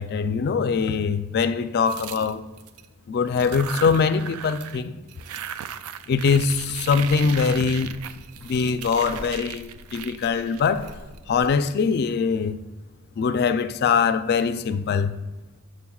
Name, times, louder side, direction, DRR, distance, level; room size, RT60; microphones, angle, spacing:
voice 1, 0.0-2.4 3.1-4.9 6.1-8.0 8.4-10.9 11.3-12.6 13.2-15.2, left 5 dB, 50° left, 0.3 m, -22 dB
sound 1, 1.8-2.8 3.3-4.8 5.1-11.5, right 9 dB, 85° right, 0.3 m, -37 dB
Livestock farm animals working animals, 6.5-11.5, equal, 60° right, 0.7 m, -44 dB
7.1 x 6.6 x 2.3 m
head